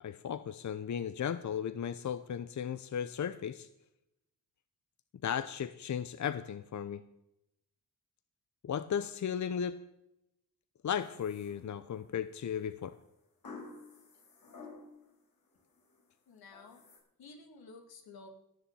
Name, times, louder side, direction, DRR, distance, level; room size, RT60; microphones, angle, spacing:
voice 1, 0.0-3.7 5.2-7.0 8.6-9.8 10.8-12.9, left 8 dB, 50° left, 13 dB, 0.7 m, -35 dB
sound 1, 11.0-12.1 13.4-15.1 15.5-16.0 16.5-17.0, left 3 dB, 70° left, 5.7 m, -51 dB
voice 2, 16.3-16.8 17.2-18.3, left 3 dB, 85° left, 4 dB, 2.7 m, -52 dB
18.5 x 7.1 x 7.7 m, 0.84 s
cardioid pair, 70°, 36 cm